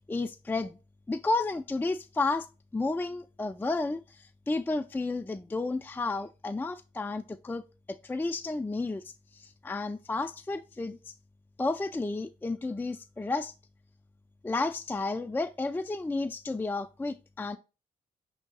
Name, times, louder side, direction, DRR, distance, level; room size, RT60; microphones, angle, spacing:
voice 1, 0.1-0.8 1.1-2.5 2.7-11.1 11.6-13.5 14.4-17.6, left 3 dB, 10° left, 0.3 m, -32 dB
5.1 x 3.6 x 2.2 m
hypercardioid pair, 40°, 18 cm